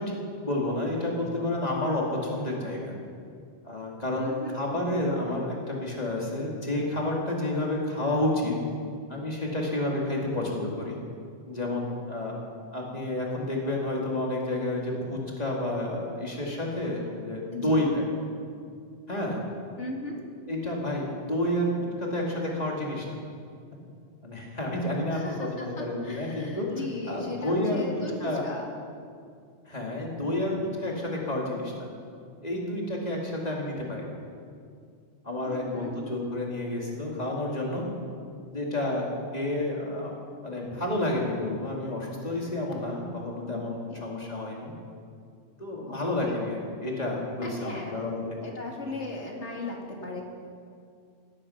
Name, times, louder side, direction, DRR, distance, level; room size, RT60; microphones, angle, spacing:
voice 1, 0.0-2.9 3.6-4.3 4.5-8.5 9.1-11.0 11.5-12.4 12.7-18.0 19.1-19.4 20.5-23.0 24.2-26.7 27.1-27.9 28.2-28.4 29.7-31.9 32.4-34.1 35.2-37.8 38.5-39.0 39.3-40.1 40.4-44.7 45.6-48.5, left 1 dB, 30° left, -2 dB, 2.8 m, -30 dB
voice 2, 4.2-4.5 17.5-17.8 19.8-20.2 25.1-28.7 35.5-35.9 43.5-43.6 43.9-44.0 45.9-46.0 46.2-46.4 47.4-48.0 48.4-50.2, left 2 dB, 65° left, 0 dB, 2.5 m, -37 dB
17.0 x 12.0 x 5.9 m, 2.3 s
omnidirectional pair, 1.3 m